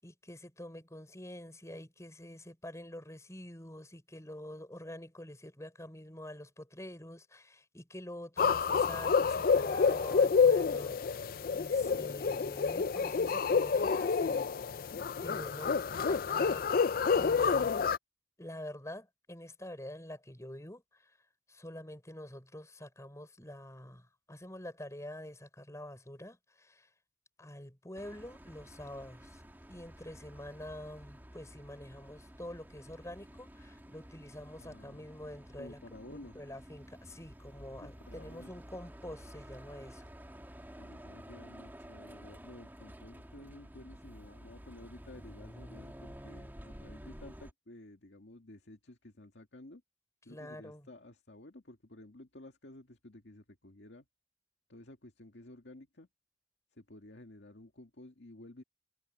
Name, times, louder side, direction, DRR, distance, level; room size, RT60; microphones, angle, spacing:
voice 1, 0.0-14.9 15.2-16.6 17.2-17.8 18.4-21.0 21.5-26.9 27.4-29.4 29.7-35.8 36.1-40.1 50.3-50.9, left 1 dB, 15° left, 5.9 m, -47 dB
sound 1, 8.4-18.0, left 5 dB, 55° left, 0.4 m, -28 dB
sound 2, 28.0-47.5, equal, 10° right, 2.4 m, -51 dB
voice 2, 34.6-35.2 35.6-36.5 37.8-38.5 40.8-49.8 50.2-54.1 54.7-56.1 56.7-58.6, left 1 dB, 85° left, 2.0 m, -53 dB
head